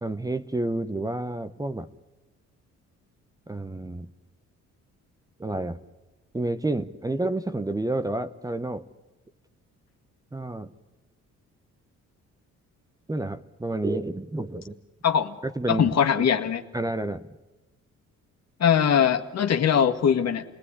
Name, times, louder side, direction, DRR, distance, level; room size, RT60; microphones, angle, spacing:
voice 1, 0.0-1.9 3.5-4.1 5.4-5.8 6.3-8.8 10.3-10.7 13.1-14.8 15.4-16.3 16.7-17.3, right 2 dB, 10° right, 11 dB, 1.0 m, -30 dB
voice 2, 15.0-15.4 15.7-16.6 18.6-20.4, left 8 dB, 60° left, 5 dB, 2.0 m, -21 dB
29.0 x 19.5 x 10.0 m, 1.1 s
cardioid pair, 90°, 30 cm